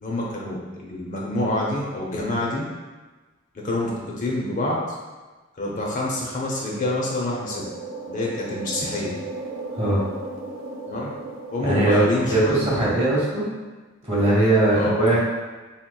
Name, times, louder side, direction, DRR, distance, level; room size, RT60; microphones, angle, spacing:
voice 1, 0.0-2.6 3.6-4.8 5.6-7.6 8.1-9.1 10.9-11.1 11.5-12.6 14.7-14.9, left 1 dB, 40° left, -4 dB, 0.6 m, -26 dB
sound 1, 5.9-13.5, right 2 dB, 75° right, 0.5 m, -37 dB
voice 2, 11.6-13.5 14.0-15.2, right 2 dB, 30° right, -6 dB, 0.9 m, -20 dB
3.5 x 2.9 x 2.2 m, 1.3 s
head